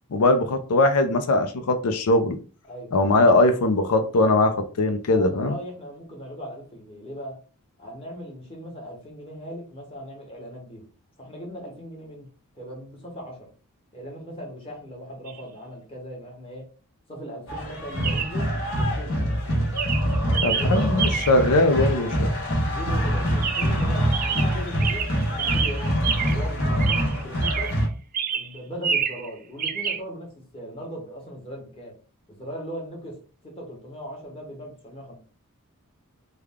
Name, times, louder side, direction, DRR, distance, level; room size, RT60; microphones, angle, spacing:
voice 1, 0.1-2.4 2.9-5.5 20.4-22.3, left 2 dB, 90° left, 0.5 m, -20 dB
voice 2, 5.1-7.4 7.8-10.8 11.2-12.3 12.5-13.5 13.9-16.7 17.1-19.4 20.3-20.9 22.7-25.9 26.3-27.8 28.3-31.9 32.3-33.2 33.4-35.2, equal, 25° left, 1.2 m, -38 dB
Chirp tweet, 15.3-15.4 18.0-18.4 19.2-19.4 19.8-21.5 23.4-23.9 24.1-26.5 26.8-27.8 28.1-29.3 29.6-30.0, right 7 dB, 40° right, 0.4 m, -28 dB
sound 1, 17.5-27.9, equal, 60° left, 1.3 m, -25 dB
3.4 x 2.2 x 3.5 m
head